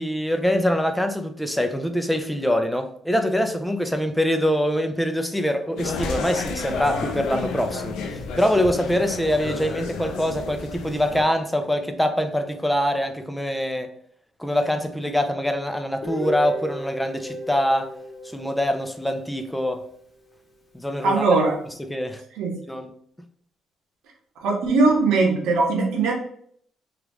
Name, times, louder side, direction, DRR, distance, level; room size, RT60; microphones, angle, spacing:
voice 1, 0.0-13.9 14.4-17.9 18.2-19.8 20.7-21.2 21.8-22.2 22.7-22.9, equal, 5° left, 0.4 m, -24 dB
sound 1, 5.8-11.2, left 4 dB, 90° left, 0.4 m, -31 dB
Guitar, 16.0-19.9, equal, 30° left, 0.9 m, -34 dB
voice 2, 21.0-21.6 22.4-22.5 24.4-26.1, right 3 dB, 90° right, 0.8 m, -20 dB
2.9 x 2.4 x 3.4 m
cardioid pair, 90°, 0 cm